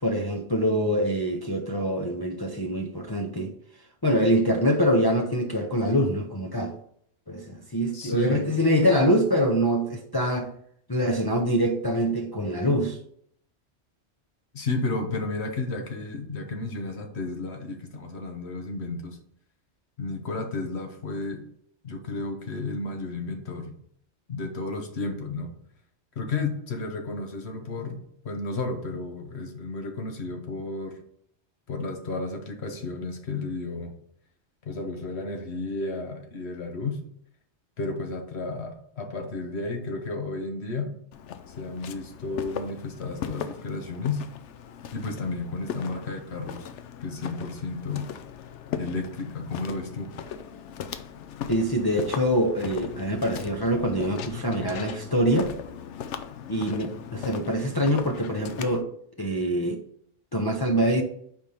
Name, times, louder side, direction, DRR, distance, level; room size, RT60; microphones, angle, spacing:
voice 1, 0.0-3.5 4.0-6.8 7.3-10.5 10.9-13.0 51.5-55.5 56.5-58.9 59.2-59.8 60.3-61.0, equal, 25° left, 0 dB, 0.6 m, -24 dB
voice 2, 7.9-8.4 14.5-19.2 20.0-21.4 21.8-23.7 24.3-25.5 26.2-28.0 28.2-31.0 31.7-33.9 34.6-37.0 37.8-40.9 41.6-44.2 44.9-46.7 47.0-48.1 48.8-50.1, left 3 dB, 70° left, 4 dB, 1.3 m, -32 dB
Walk footsteps, 41.1-58.8, left 8 dB, 85° left, 0.9 m, -38 dB
5.2 x 4.4 x 5.4 m, 0.67 s
omnidirectional pair, 1.2 m